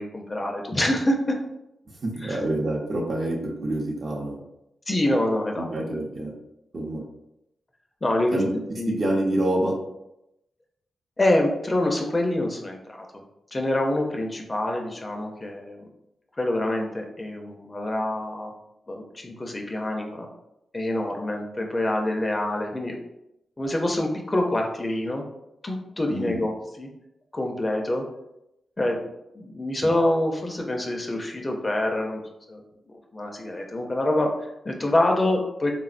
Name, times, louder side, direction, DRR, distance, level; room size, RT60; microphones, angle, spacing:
voice 1, 0.0-1.4 2.2-2.4 4.9-6.1 8.0-9.0 11.2-13.2 13.5-15.9 16.4-18.5 18.9-20.3 20.7-23.0 23.6-25.2 25.6-26.9 27.3-28.1 28.8-29.0 29.3-32.2 32.5-32.6 33.1-35.7, left 1 dB, 25° left, 2 dB, 0.4 m, -26 dB
voice 2, 2.0-4.4 5.6-6.3 6.7-7.0 8.3-8.5 9.0-9.7 26.1-26.4, right 1 dB, 50° right, -1 dB, 0.6 m, -26 dB
3.4 x 2.0 x 2.4 m, 0.85 s
cardioid pair, 80°, 0 cm